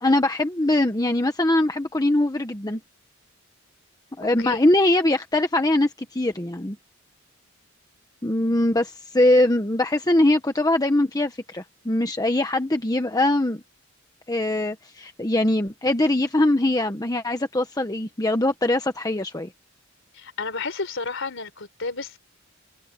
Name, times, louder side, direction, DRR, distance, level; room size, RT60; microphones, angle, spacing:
voice 1, 0.0-2.8 4.2-6.8 8.2-13.6 14.3-19.5, left 1 dB, 20° left, 1.1 m, -22 dB
voice 2, 20.1-22.2, left 4 dB, 65° left, 4.4 m, -31 dB
head